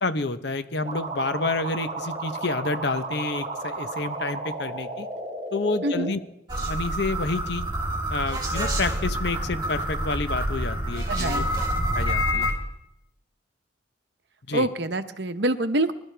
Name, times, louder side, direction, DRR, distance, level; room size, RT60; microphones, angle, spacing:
voice 1, 0.0-5.1 5.5-6.2 6.7-7.7 8.1-11.5 11.9-12.5 14.5-14.7, left 3 dB, 60° left, 11 dB, 0.9 m, -29 dB
sound 1, 0.8-6.1, right 2 dB, 35° right, 2.3 m, -33 dB
voice 2, 5.8-6.1 11.1-11.4 14.5-15.9, right 1 dB, 60° right, 9 dB, 0.9 m, -25 dB
sound 2, 6.5-12.5, equal, 20° right, 3.2 m, -27 dB
25.0 x 12.5 x 3.4 m, 0.82 s
head